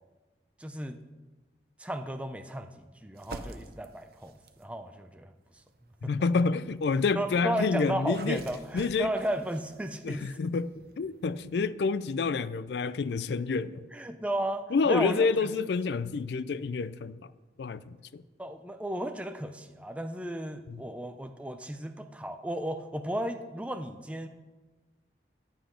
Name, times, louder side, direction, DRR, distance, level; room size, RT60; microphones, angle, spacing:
voice 1, 0.6-1.0 1.8-4.3 4.6-5.3 7.2-10.2 13.9-15.3 18.4-24.3, right 1 dB, 5° right, 0.4 m, -34 dB
Falling On Wet Grass, 3.1-4.7 5.4-11.6, right 2 dB, 55° right, 0.6 m, -49 dB
voice 2, 6.0-8.4 8.7-9.1 10.0-13.9 14.7-17.3 17.6-18.2 20.7-20.8, left 4 dB, 75° left, 0.4 m, -28 dB
9.8 x 8.0 x 5.1 m
head